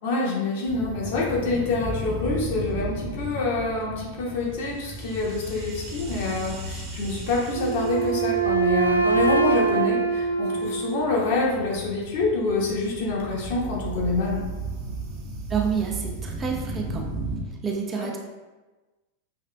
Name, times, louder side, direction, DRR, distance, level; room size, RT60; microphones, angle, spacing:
voice 1, 0.0-14.4 18.0-18.1, left 3 dB, 50° left, -4 dB, 1.1 m, -26 dB
sound 1, 0.7-17.4, right 2 dB, 40° right, 0.9 m, -35 dB
Wind instrument woodwind instrument, 7.5-11.5, right 5 dB, 80° right, 0.3 m, -24 dB
voice 2, 15.5-17.1 17.6-18.2, right 6 dB, 20° right, 0 dB, 0.5 m, -28 dB
5.7 x 3.2 x 2.2 m, 1.2 s
figure-of-eight pair, 90°, 0 cm